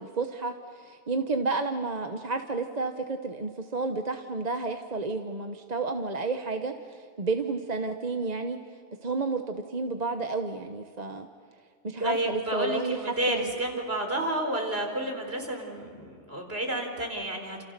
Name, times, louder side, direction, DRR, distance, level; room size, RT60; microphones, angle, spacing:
voice 1, 0.0-8.6 9.0-11.3 11.8-13.5, right 3 dB, 35° right, 6 dB, 1.2 m, -31 dB
voice 2, 12.0-17.6, right 1 dB, 55° right, 2 dB, 4.7 m, -30 dB
30.0 x 28.5 x 6.8 m, 2.1 s
omnidirectional pair, 1.2 m